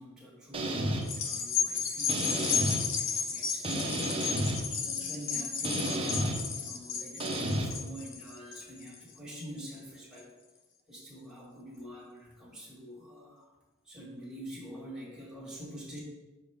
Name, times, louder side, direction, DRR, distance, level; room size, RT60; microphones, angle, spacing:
voice 1, 0.0-10.3 10.9-13.5 13.8-16.0, equal, 5° right, -6 dB, 2.0 m, -46 dB
sound 1, 0.5-1.0 2.1-2.8 3.6-4.6 5.6-6.4 7.2-7.7, right 1 dB, 25° right, 0.8 m, -31 dB
sound 2, 1.0-9.7 10.2-10.3, left 6 dB, 60° left, 0.8 m, -33 dB
6.9 x 5.1 x 3.6 m, 1.1 s
head